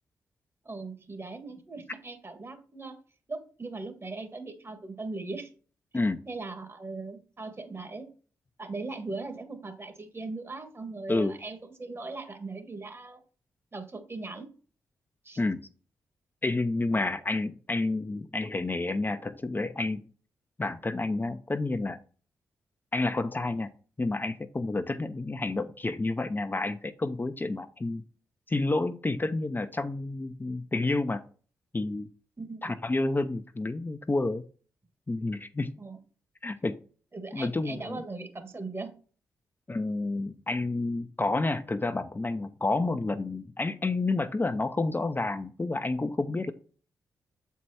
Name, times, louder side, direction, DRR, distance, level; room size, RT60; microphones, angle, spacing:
voice 1, 0.6-2.9 3.3-5.5 6.3-8.1 8.6-13.2 13.7-14.5 15.2-15.4 32.4-32.8 35.8-36.0 37.1-38.9, right 3 dB, 35° right, 7 dB, 1.8 m, -39 dB
voice 2, 16.4-20.1 20.6-22.0 22.9-23.7 24.0-28.0 28.5-31.2 31.7-32.1 32.6-34.4 35.1-35.7 36.4-36.8 37.3-38.0 39.7-46.5, left 2 dB, 25° left, 9 dB, 0.7 m, -29 dB
7.3 x 4.7 x 4.3 m, 0.40 s
hypercardioid pair, 40°, 7 cm